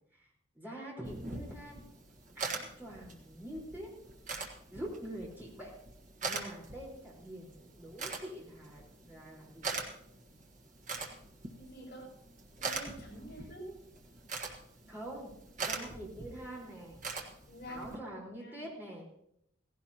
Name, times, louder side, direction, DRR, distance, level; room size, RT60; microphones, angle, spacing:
voice 1, 0.5-1.9 2.3-3.9 4.7-5.7 6.2-9.8 14.9-15.3 15.6-17.0 17.7-19.1, right 1 dB, 10° right, -4 dB, 4.4 m, -45 dB
sound 1, 1.0-18.0, right 3 dB, 40° right, 1.5 m, -43 dB
voice 2, 11.6-12.1 12.6-13.7 17.5-18.6, equal, 55° left, -3 dB, 6.9 m, -47 dB
17.0 x 16.5 x 2.9 m, 0.74 s
head